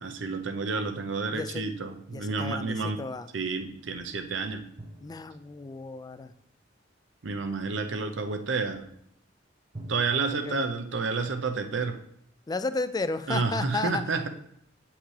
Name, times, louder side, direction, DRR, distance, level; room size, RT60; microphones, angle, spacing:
voice 1, 0.0-3.0 3.3-4.7 7.2-8.9 9.9-12.0 13.3-14.3, right 4 dB, 70° right, 7 dB, 0.7 m, -30 dB
voice 2, 1.3-1.7 2.1-3.3 5.0-6.3 10.3-10.7 12.5-14.0, left 3 dB, 20° left, 12 dB, 0.3 m, -33 dB
sound 1, 4.8-6.4 9.7-10.3, right 1 dB, 30° right, 0.6 m, -46 dB
8.9 x 5.7 x 3.2 m, 0.71 s
head